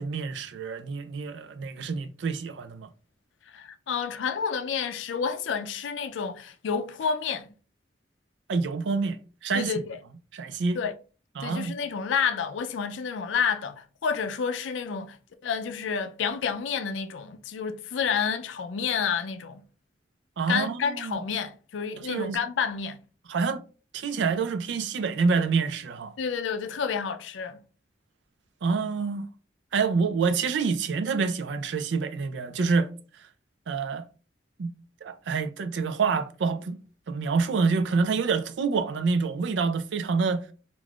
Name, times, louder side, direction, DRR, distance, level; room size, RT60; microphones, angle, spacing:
voice 1, 0.0-2.9 8.5-9.2 9.4-9.7 10.3-10.8 11.4-11.7 20.4-21.2 22.0-22.4 23.3-23.6 23.9-26.1 28.6-29.2 29.7-32.9 33.7-34.0 34.6-34.7 35.0-36.8 37.1-40.4, right 4 dB, 75° right, 0.4 m, -27 dB
voice 2, 3.5-7.5 9.5-10.0 10.8-10.9 11.4-15.2 15.4-19.6 20.5-23.0 26.2-27.6, left 6 dB, 90° left, 0.4 m, -29 dB
2.5 x 2.3 x 3.4 m
head